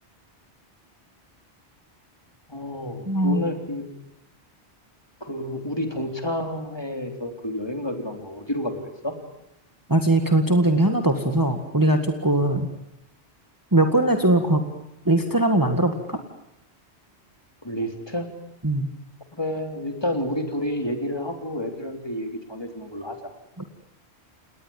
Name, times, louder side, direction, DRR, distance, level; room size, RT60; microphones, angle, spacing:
voice 1, 2.5-3.9 5.2-9.2 17.6-18.3 19.3-23.2, left 1 dB, 25° left, 5 dB, 3.6 m, -30 dB
voice 2, 3.1-3.4 9.9-12.7 13.7-14.6 15.1-16.2 18.6-18.9 23.6-23.7, right 1 dB, 20° right, 5 dB, 1.9 m, -20 dB
29.5 x 19.0 x 7.2 m, 0.85 s
omnidirectional pair, 1.1 m